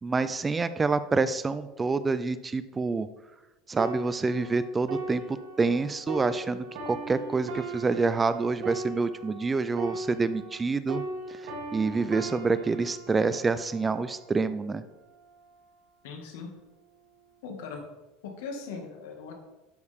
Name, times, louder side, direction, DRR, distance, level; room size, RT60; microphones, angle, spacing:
voice 1, 0.0-3.1 3.7-11.0 11.3-14.8, right 4 dB, 15° right, 13 dB, 0.4 m, -27 dB
sound 1, 3.8-10.6 10.9-14.5 15.1-15.3, right 3 dB, 85° right, 3.2 m, -38 dB
voice 2, 16.0-16.5 17.4-17.9 18.2-19.3, left 5 dB, 85° left, 3 dB, 2.1 m, -39 dB
11.5 x 6.4 x 3.6 m, 1.1 s
supercardioid pair, 140°, 0 cm